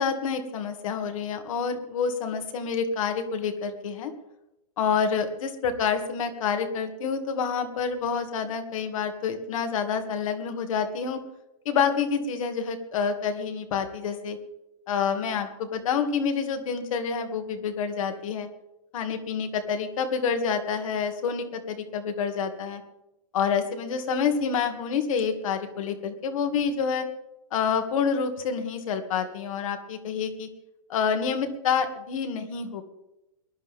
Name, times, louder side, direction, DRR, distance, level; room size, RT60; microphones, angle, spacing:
voice 1, 0.0-4.1 4.8-11.2 11.7-14.4 14.9-18.5 18.9-22.8 23.3-27.1 27.5-30.5 30.9-32.8, left 6 dB, 65° left, 6 dB, 2.3 m, -28 dB
22.5 x 11.0 x 3.7 m, 0.89 s
hypercardioid pair, 115°, 18 cm